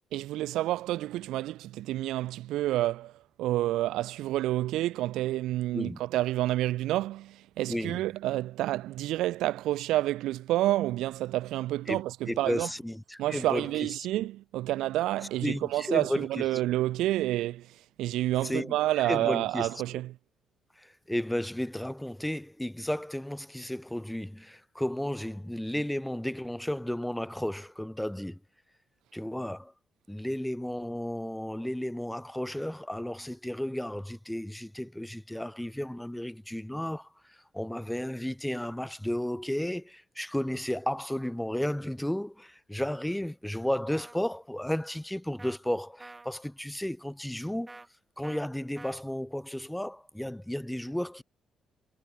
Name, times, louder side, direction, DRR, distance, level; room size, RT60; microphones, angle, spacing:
voice 1, 0.1-3.1 3.4-12.7 13.2-17.7 18.0-20.1, right 15 dB, 90° right, 0.7 m, -29 dB
voice 2, 7.7-8.0 11.9-14.3 15.4-16.6 18.4-18.8 19.0-19.7 20.8-28.4 29.1-29.7 30.1-47.8 48.2-51.2, left 1 dB, 5° left, 1.8 m, -33 dB
sound 1, 43.9-44.2 45.4-45.6 46.0-46.3 47.7-47.9 48.2-48.4 48.8-49.0, right 2 dB, 20° right, 1.4 m, -47 dB
cardioid pair, 90°, 0 cm